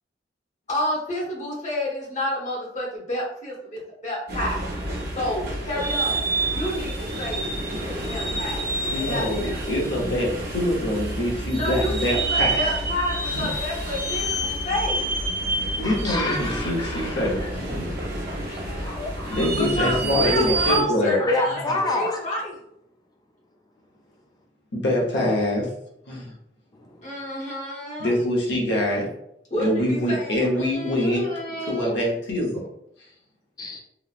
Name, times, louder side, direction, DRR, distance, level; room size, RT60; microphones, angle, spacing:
voice 1, 0.7-4.7 5.1-7.5 7.8-8.6 8.9-9.9 11.5-15.1 19.5-22.6 27.0-28.2 29.5-32.0, left 1 dB, 40° left, -4 dB, 0.9 m, -30 dB
sound 1, 4.3-20.8, right 2 dB, 60° right, 0.8 m, -28 dB
voice 2, 8.9-12.7 13.2-13.5 15.8-18.0 19.3-21.2 24.7-25.7 26.1-26.3 28.0-29.1 29.6-31.2 31.7-32.6, left 1 dB, 70° left, -3 dB, 0.8 m, -25 dB
voice 3, 15.8-17.5 18.5-19.5 20.7-22.2 26.8-27.1 33.6-33.8, left 2 dB, 20° left, 1 dB, 0.4 m, -28 dB
3.0 x 2.0 x 2.4 m, 0.75 s
head